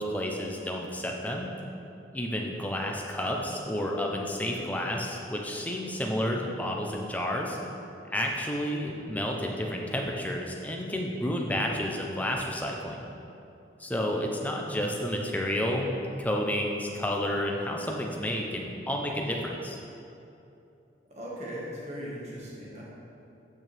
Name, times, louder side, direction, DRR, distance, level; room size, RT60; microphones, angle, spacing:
voice 1, 0.0-1.5 2.1-7.6 8.1-13.0 13.8-15.9 16.2-19.8, equal, 10° left, 0 dB, 0.6 m, -30 dB
voice 2, 21.1-22.8, equal, 35° right, -6 dB, 1.7 m, -38 dB
9.3 x 6.1 x 3.4 m, 2.7 s
head